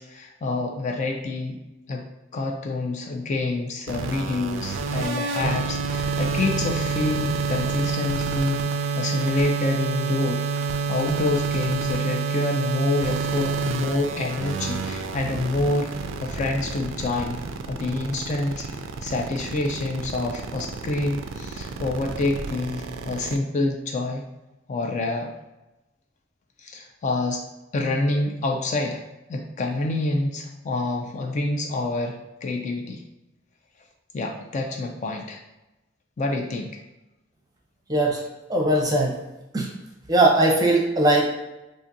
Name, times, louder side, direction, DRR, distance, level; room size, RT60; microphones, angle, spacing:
voice 1, 0.0-1.6 1.9-2.1 2.3-8.6 9.0-10.4 10.9-15.9 16.2-17.4 17.7-24.3 24.7-25.3 26.6-27.4 27.7-29.0 29.3-33.0 34.1-35.4 36.2-36.7, left 2 dB, 40° left, 2 dB, 0.3 m, -27 dB
sound 1, 3.9-23.4, right 5 dB, 70° right, 0.3 m, -28 dB
voice 2, 37.9-38.2 38.5-39.1 39.5-39.7 40.1-41.2, right 1 dB, 20° right, -1 dB, 0.6 m, -19 dB
3.8 x 2.5 x 2.6 m, 0.99 s
head